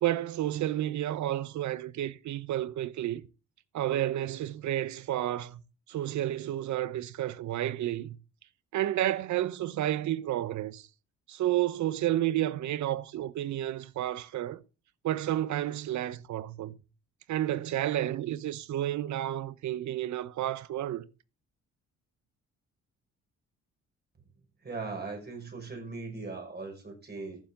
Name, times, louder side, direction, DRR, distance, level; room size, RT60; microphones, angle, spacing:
voice 1, 0.0-3.2 3.7-5.6 5.9-8.2 8.7-10.9 11.3-14.6 15.0-16.8 17.3-21.1, right 13 dB, 70° right, 0.9 m, -31 dB
voice 2, 24.6-27.4, right 3 dB, 35° right, 6.2 m, -39 dB
14.5 x 7.4 x 3.8 m
cardioid pair, 90°, 30 cm